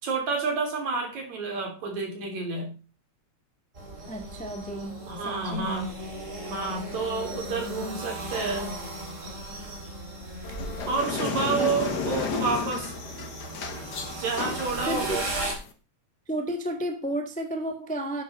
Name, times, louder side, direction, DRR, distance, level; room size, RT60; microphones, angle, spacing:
voice 1, 0.0-2.7 5.1-5.9 6.4-8.8 10.9-12.9 14.2-15.4, right 4 dB, 70° right, 4.4 m, -29 dB
sound 1, 3.7-15.5, right 1 dB, 25° right, 2.8 m, -37 dB
voice 2, 4.1-5.9 11.2-11.7 14.9-15.3 16.3-18.2, right 1 dB, 5° left, 0.9 m, -32 dB
sound 2, 10.4-15.7, left 5 dB, 45° left, 1.6 m, -33 dB
11.0 x 8.5 x 4.2 m
omnidirectional pair, 3.3 m